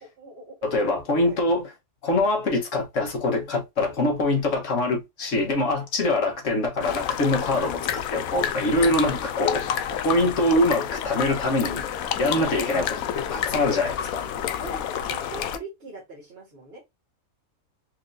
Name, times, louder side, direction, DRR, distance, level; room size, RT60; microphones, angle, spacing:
voice 1, 0.0-0.6 0.9-1.4 7.2-7.4 9.0-9.3 9.9-10.0 12.3-12.5 14.2-14.3 14.5-16.9, right 3 dB, 45° right, 1.5 m, -42 dB
voice 2, 0.6-1.6 2.0-9.7 10.0-11.8 12.2-14.2, left 2 dB, 60° left, 1.5 m, -24 dB
sound 1, 6.8-15.6, left 9 dB, 80° left, 1.0 m, -29 dB
4.5 x 3.3 x 2.6 m
omnidirectional pair, 1.5 m